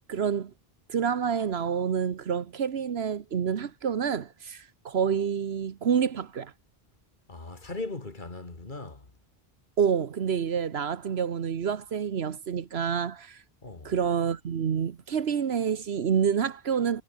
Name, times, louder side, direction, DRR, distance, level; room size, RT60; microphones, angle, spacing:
voice 1, 0.1-0.5 0.9-6.5 9.8-13.4 13.8-17.0, right 7 dB, 80° right, 1.3 m, -28 dB
voice 2, 7.3-9.1 13.6-13.9, left 2 dB, 50° left, 2.7 m, -38 dB
omnidirectional pair, 1.0 m